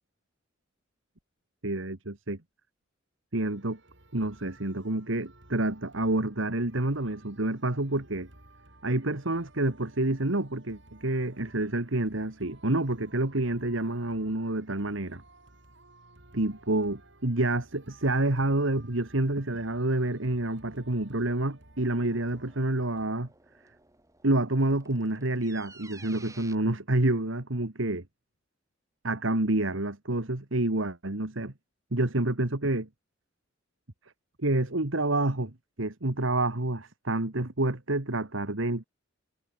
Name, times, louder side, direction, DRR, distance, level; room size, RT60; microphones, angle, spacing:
voice 1, 1.6-2.4 3.3-3.8 4.1-8.3 8.8-15.2 16.3-23.3 24.2-28.0 29.0-31.5 31.9-32.9 34.4-35.5 35.8-38.8, right 2 dB, 80° right, 2.1 m, -28 dB
sound 1, 3.4-23.1, right 2 dB, 65° right, 6.1 m, -57 dB
sound 2, 21.2-26.6, right 3 dB, 15° right, 5.8 m, -54 dB
head